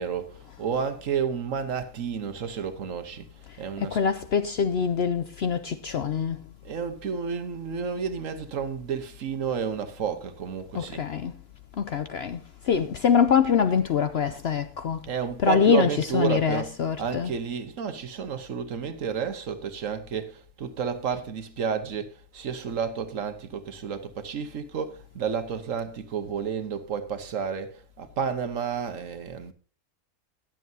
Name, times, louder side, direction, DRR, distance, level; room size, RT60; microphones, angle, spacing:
voice 1, 0.0-4.0 6.6-11.1 15.1-29.5, right 7 dB, 60° right, 1.3 m, -31 dB
voice 2, 3.8-6.4 10.7-11.3 11.8-15.1 15.4-17.3, left 7 dB, 60° left, 0.7 m, -24 dB
20.0 x 7.5 x 2.7 m
omnidirectional pair, 1.6 m